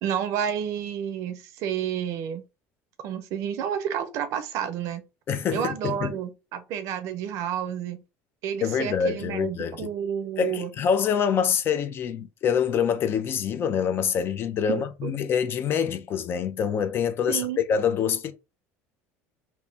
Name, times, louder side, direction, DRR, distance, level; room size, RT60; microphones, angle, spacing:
voice 1, 0.0-2.4 3.0-5.0 5.5-8.0 8.4-10.7 14.7-15.1 17.3-17.6, right 9 dB, 60° right, 0.6 m, -30 dB
voice 2, 5.3-6.1 8.6-9.9 10.4-18.3, left 7 dB, 40° left, 0.4 m, -25 dB
2.9 x 2.1 x 3.2 m
cardioid pair, 125°, 6 cm